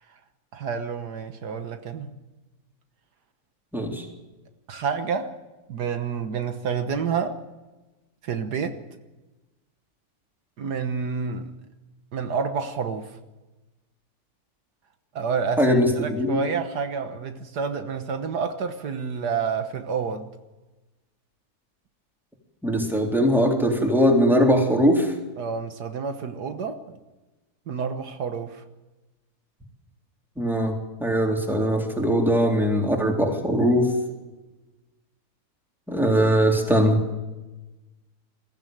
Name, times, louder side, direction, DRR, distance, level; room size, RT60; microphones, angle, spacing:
voice 1, 0.5-2.1 4.7-5.3 5.7-7.4 8.2-8.8 10.6-11.5 12.1-13.1 15.2-20.3 25.4-26.8 27.7-28.6, right 6 dB, 75° right, 1.8 m, -29 dB
voice 2, 3.7-4.1 15.6-16.5 22.6-25.1 30.4-33.9 35.9-37.0, equal, ahead, 3.6 m, -21 dB
22.0 x 15.0 x 9.3 m
omnidirectional pair, 1.7 m